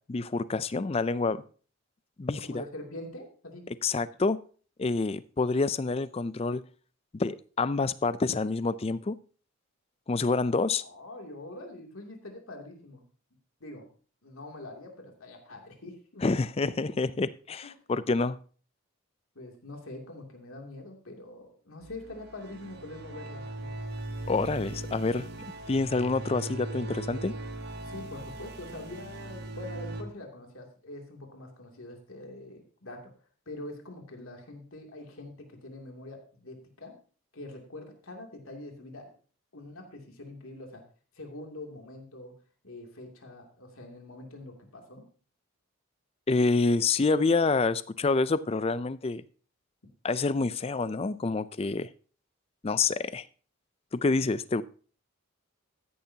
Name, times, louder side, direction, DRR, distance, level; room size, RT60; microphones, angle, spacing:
voice 1, 0.1-1.4 2.2-2.6 3.8-4.4 4.8-6.6 7.1-9.2 10.1-10.8 16.2-18.4 24.3-25.3 25.7-27.3 46.3-49.2 50.0-51.9 52.6-53.2 53.9-54.6, left 3 dB, 30° left, 16 dB, 0.4 m, -27 dB
voice 2, 2.4-3.7 10.8-13.0 13.6-13.9 14.2-16.3 17.6-17.7 19.3-23.8 27.8-33.1 33.5-37.0 37.3-39.1 39.5-40.8 41.1-42.3 42.6-45.1, left 1 dB, 80° left, 2 dB, 2.7 m, -44 dB
sound 1, 21.8-30.0, right 2 dB, 50° right, 1.3 m, -39 dB
14.5 x 10.5 x 2.8 m, 0.41 s
head